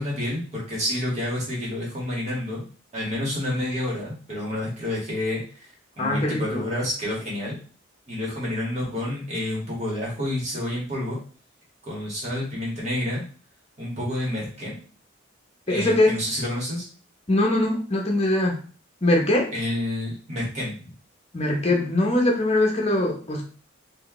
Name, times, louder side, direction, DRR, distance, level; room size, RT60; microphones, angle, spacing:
voice 1, 0.0-2.7 2.9-5.7 6.0-7.6 8.1-11.2 11.8-13.2 13.8-14.7 15.7-16.8 19.5-20.9, left 1 dB, 35° right, -5 dB, 1.8 m, -29 dB
voice 2, 6.0-6.6 15.7-16.1 17.3-18.6 19.0-19.5 21.3-23.4, left 1 dB, 30° left, 1 dB, 0.9 m, -22 dB
4.7 x 2.7 x 3.1 m, 0.39 s
head